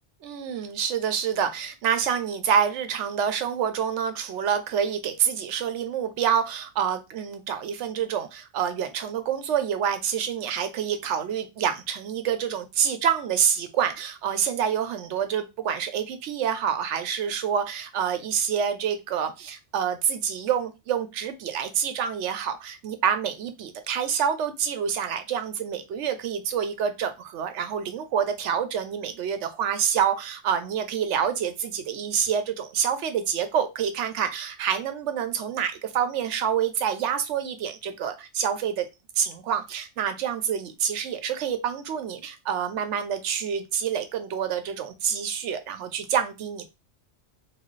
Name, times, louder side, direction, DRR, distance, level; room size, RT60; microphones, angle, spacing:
voice 1, 0.2-38.9 39.2-46.7, right 8 dB, 85° right, 9 dB, 0.9 m, -27 dB
4.0 x 2.3 x 3.1 m, 0.25 s
omnidirectional pair, 1.2 m